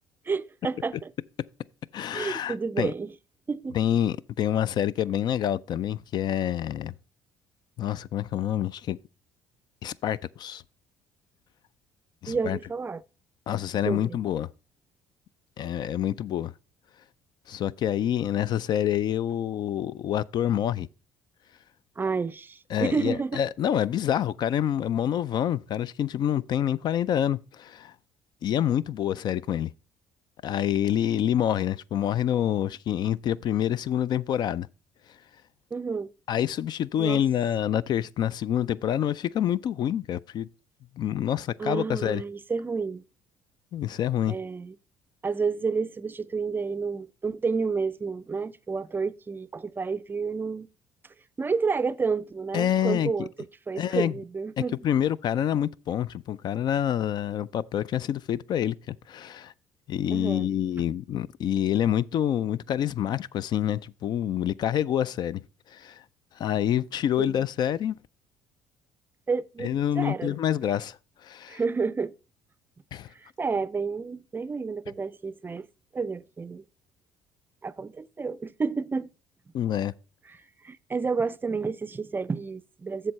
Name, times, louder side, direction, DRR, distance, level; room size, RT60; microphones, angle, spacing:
voice 1, 0.3-1.1 2.1-3.1 3.5-3.8 12.3-13.0 13.9-14.2 22.0-23.4 35.7-36.1 37.0-37.2 41.6-43.0 44.3-44.7 45.2-50.7 51.4-53.3 53.7-54.8 60.1-60.5 67.2-67.4 69.3-70.4 71.5-72.1 73.4-75.7 75.9-76.6 77.6-79.1 80.3-80.4 80.6-83.1, right 4 dB, 25° right, 0.4 m, -30 dB
voice 2, 1.9-2.9 3.7-6.9 7.8-9.0 9.8-10.6 12.2-12.6 13.5-14.5 15.6-16.5 17.5-20.9 22.7-27.9 28.4-29.7 30.4-34.7 36.3-40.5 41.0-42.2 43.7-44.4 52.5-53.1 53.8-54.1 54.6-59.5 59.9-65.4 65.7-66.0 66.4-68.0 69.6-71.0 71.2-71.6 72.9-73.1 79.5-79.9, left 10 dB, 55° left, 0.3 m, -27 dB
7.6 x 6.7 x 4.1 m
supercardioid pair, 75°, 9 cm